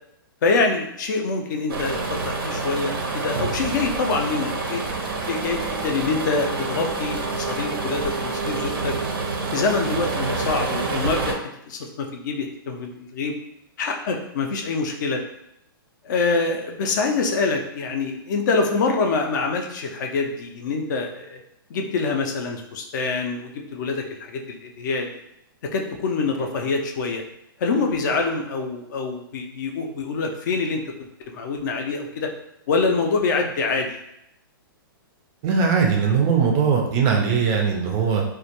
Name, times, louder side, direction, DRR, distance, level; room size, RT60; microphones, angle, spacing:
voice 1, 0.4-4.8 5.3-8.9 9.5-11.4 11.7-13.4 13.8-15.2 16.0-21.4 21.7-25.1 25.7-27.2 27.6-32.3 32.7-34.0, left 4 dB, 55° left, 3 dB, 0.4 m, -25 dB
sound 1, 1.7-11.3, right 3 dB, 85° right, 0.5 m, -27 dB
voice 2, 35.4-38.2, right 6 dB, 25° right, 1 dB, 0.3 m, -20 dB
2.1 x 2.1 x 2.8 m, 0.78 s
hypercardioid pair, 150°, 12 cm